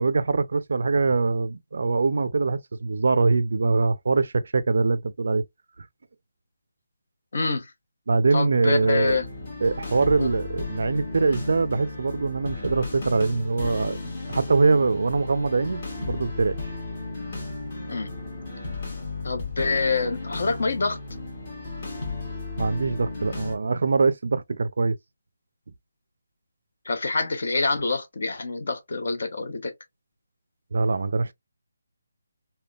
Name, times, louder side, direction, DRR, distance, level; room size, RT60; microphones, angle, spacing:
voice 1, 0.0-5.4 8.1-9.2 9.6-16.6 22.6-25.0 30.7-31.3, right 3 dB, 55° right, 0.3 m, -23 dB
voice 2, 7.3-7.7 8.3-9.3 10.2-10.3 17.9-18.1 19.2-21.0 26.8-29.7, left 3 dB, 50° left, 0.7 m, -26 dB
sound 1, 8.7-23.6, left 3 dB, 30° left, 1.2 m, -34 dB
3.5 x 2.2 x 2.3 m
hypercardioid pair, 175°, 0 cm